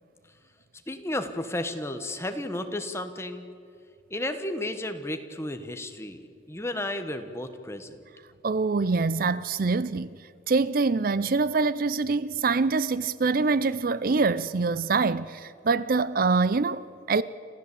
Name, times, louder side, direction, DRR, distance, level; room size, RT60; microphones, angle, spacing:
voice 1, 0.9-3.4 4.1-8.0, left 1 dB, 15° left, 1.2 m, -33 dB
voice 2, 8.4-10.1 10.5-17.2, right 4 dB, 45° right, 0.5 m, -25 dB
26.5 x 15.0 x 8.4 m
head